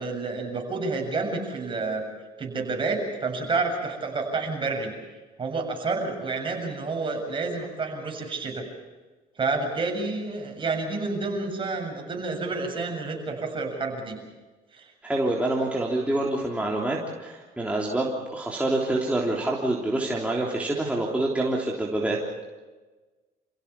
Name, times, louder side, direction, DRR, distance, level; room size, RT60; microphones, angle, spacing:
voice 1, 0.0-2.0 2.4-4.9 5.4-8.7 9.4-14.2 14.7-14.9, right 3 dB, 30° right, 2 dB, 7.5 m, -29 dB
voice 2, 15.0-22.2, right 2 dB, 10° right, -3 dB, 3.5 m, -26 dB
29.0 x 16.5 x 7.2 m, 1.2 s
cardioid pair, 110°, 17 cm